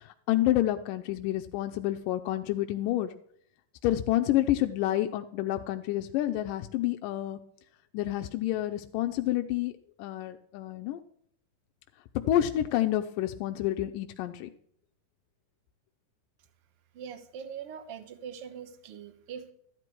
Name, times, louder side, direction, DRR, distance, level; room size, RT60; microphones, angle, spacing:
voice 1, 0.0-3.1 3.8-7.4 7.9-11.0 12.3-14.5, left 13 dB, 80° left, 6 dB, 2.2 m, -29 dB
voice 2, 16.9-19.5, right 7 dB, 65° right, 9 dB, 1.5 m, -42 dB
13.5 x 10.5 x 4.6 m, 0.67 s
omnidirectional pair, 3.9 m